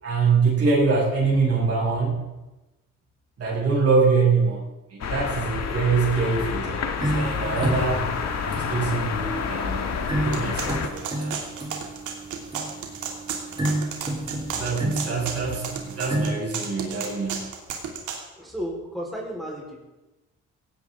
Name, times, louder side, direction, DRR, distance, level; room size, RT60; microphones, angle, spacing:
voice 1, 0.0-2.2 3.4-4.6 4.9-8.1 8.4-11.4 14.5-17.5, right 4 dB, 50° right, -3 dB, 6.0 m, -24 dB
sound 1, 5.0-10.9, left 6 dB, 60° left, 1.8 m, -28 dB
sound 2, 7.0-16.3, right 1 dB, 15° right, 2.8 m, -31 dB
sound 3, 10.3-18.2, right 6 dB, 75° right, 2.8 m, -33 dB
voice 2, 18.3-19.8, equal, ahead, -3 dB, 4.4 m, -33 dB
17.0 x 17.0 x 3.8 m, 1.1 s
cardioid pair, 90°, 30 cm